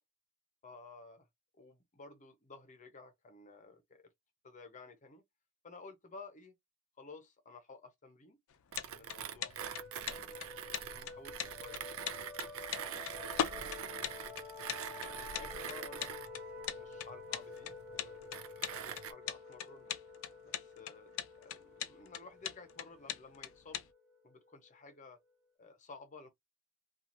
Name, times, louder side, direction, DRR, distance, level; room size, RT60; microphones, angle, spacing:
voice 1, 0.6-1.3 1.5-4.1 4.4-5.2 5.6-6.5 7.0-8.4 8.7-9.6 10.1-11.8 13.1-13.7 14.8-16.1 16.7-19.9 20.4-21.1 21.4-23.8 24.2-25.2 25.6-26.3, left 3 dB, 35° left, 0.7 m, -54 dB
sound 1, 8.5-23.9, left 9 dB, 65° left, 0.4 m, -40 dB
Mechanisms, 8.7-19.1, right 9 dB, 65° right, 0.4 m, -45 dB
sound 2, 9.6-24.9, left 4 dB, 5° right, 0.9 m, -50 dB
2.9 x 2.4 x 2.5 m
head